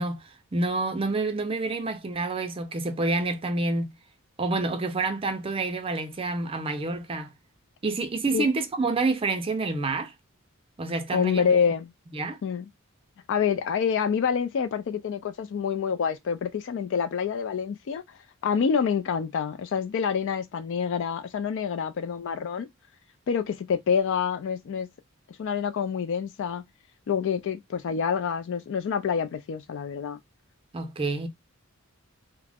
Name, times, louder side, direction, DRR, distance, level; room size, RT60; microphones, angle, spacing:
voice 1, 0.0-3.9 4.4-7.3 7.8-10.1 10.8-11.5 12.1-12.4 30.7-31.3, right 3 dB, 25° right, 0.4 m, -28 dB
voice 2, 11.1-11.9 12.4-12.7 13.3-18.0 18.4-22.7 23.3-24.9 25.4-26.6 27.1-30.2, left 6 dB, 60° left, 0.3 m, -27 dB
2.3 x 2.0 x 3.3 m
head